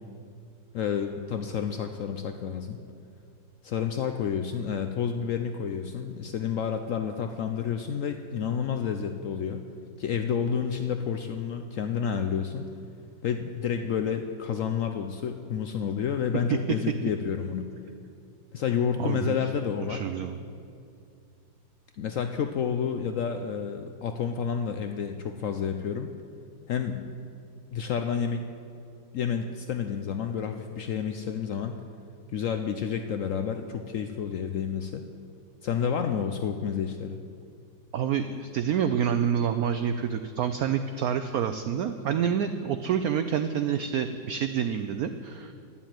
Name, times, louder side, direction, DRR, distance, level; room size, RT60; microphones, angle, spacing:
voice 1, 0.7-2.8 3.6-9.6 10.0-12.7 13.2-17.7 18.5-20.0 22.0-26.1 26.7-27.1 27.7-28.5 29.1-31.8 32.3-35.0 35.6-37.2, left 7 dB, 75° left, 6 dB, 0.7 m, -30 dB
voice 2, 19.0-19.4 19.9-20.4 37.9-45.5, right 8 dB, 75° right, 8 dB, 0.8 m, -28 dB
11.0 x 7.1 x 9.0 m, 2.4 s
omnidirectional pair, 2.0 m